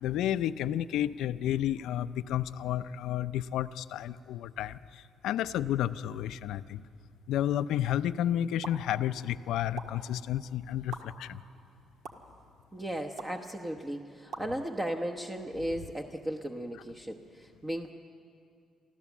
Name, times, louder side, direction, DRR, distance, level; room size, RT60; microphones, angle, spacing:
voice 1, 0.0-4.8 5.2-6.8 7.3-11.4, left 11 dB, 85° left, 14 dB, 0.4 m, -31 dB
sound 1, 8.6-8.8 9.8-9.9 10.9-11.0 12.0-12.1 13.2-13.4 14.3-14.5, right 4 dB, 70° right, 1.6 m, -40 dB
voice 2, 12.7-17.9, right 1 dB, 20° right, 3 dB, 1.0 m, -36 dB
24.5 x 14.5 x 7.2 m, 2.4 s
cardioid pair, 90°, 0 cm